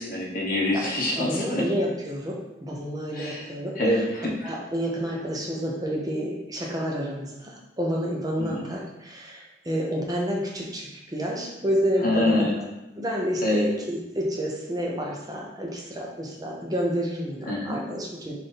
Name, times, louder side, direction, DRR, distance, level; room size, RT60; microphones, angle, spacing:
voice 1, 0.0-1.6 3.1-3.4 3.8-4.5 8.4-8.6 12.0-12.5 13.4-13.6 17.5-17.8, left 1 dB, 50° left, -4 dB, 0.9 m, -25 dB
voice 2, 1.2-4.0 4.4-12.4 13.0-18.3, equal, 20° right, -2 dB, 0.6 m, -29 dB
4.2 x 2.6 x 3.3 m, 1.0 s
head